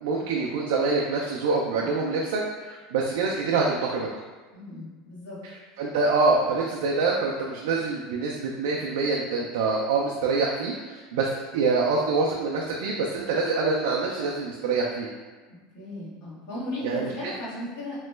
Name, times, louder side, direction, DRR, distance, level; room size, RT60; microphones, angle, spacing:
voice 1, 0.0-4.1 5.8-15.1 16.8-17.3, right 4 dB, 85° right, -2 dB, 0.3 m, -25 dB
voice 2, 4.5-5.4 15.7-18.0, left 1 dB, 65° left, -8 dB, 1.2 m, -36 dB
3.0 x 2.1 x 3.2 m, 1.3 s
cardioid pair, 180°, 0 cm